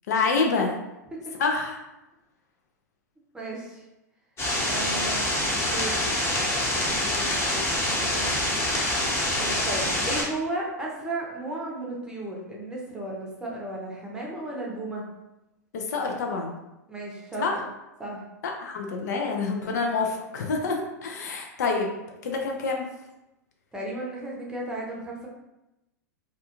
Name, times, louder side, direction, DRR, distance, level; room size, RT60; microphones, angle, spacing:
voice 1, 0.1-0.7 1.4-1.8 15.7-16.5 17.4-17.6 18.4-21.9 22.2-22.9, left 4 dB, 70° left, 2 dB, 0.5 m, -27 dB
voice 2, 3.3-3.8 4.6-6.1 6.6-8.5 9.4-15.0 16.9-17.6 18.0-18.3 23.7-25.3, right 2 dB, 10° right, -3 dB, 0.7 m, -35 dB
sound 1, 4.4-10.2, left 1 dB, 25° left, 1.0 m, -26 dB
2.4 x 2.3 x 2.9 m, 0.95 s
hypercardioid pair, 100°, 10 cm